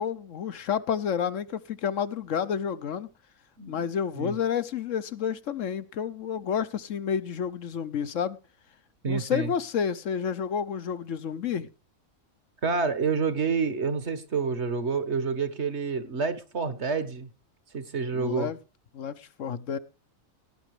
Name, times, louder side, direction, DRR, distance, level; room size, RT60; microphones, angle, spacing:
voice 1, 0.0-3.1 3.7-8.4 9.1-11.7 18.1-18.6 18.9-19.8, left 7 dB, 65° left, 14 dB, 1.2 m, -30 dB
voice 2, 9.0-9.5 12.6-17.3 17.7-18.5, right 5 dB, 55° right, 12 dB, 1.8 m, -28 dB
18.0 x 10.0 x 3.2 m, 0.33 s
omnidirectional pair, 1.4 m